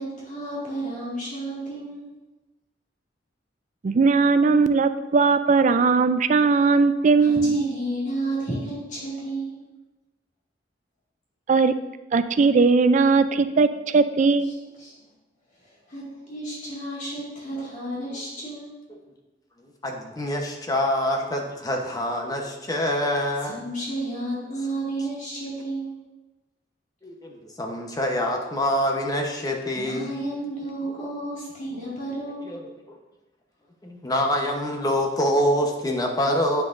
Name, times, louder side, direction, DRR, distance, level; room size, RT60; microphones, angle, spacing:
voice 1, 0.0-2.1 7.2-9.6 14.4-14.9 15.6-18.7 23.4-25.9 29.8-32.6, right 1 dB, 45° left, -6 dB, 2.0 m, -32 dB
voice 2, 3.8-7.6 11.5-11.7 12.1-14.5, right 4 dB, 45° right, 11 dB, 0.4 m, -19 dB
voice 3, 19.6-23.6 27.0-30.1 31.0-31.1 32.5-32.6 32.9-33.0 33.8-36.6, equal, 20° left, 1 dB, 0.9 m, -25 dB
9.4 x 6.1 x 2.5 m, 1.1 s
head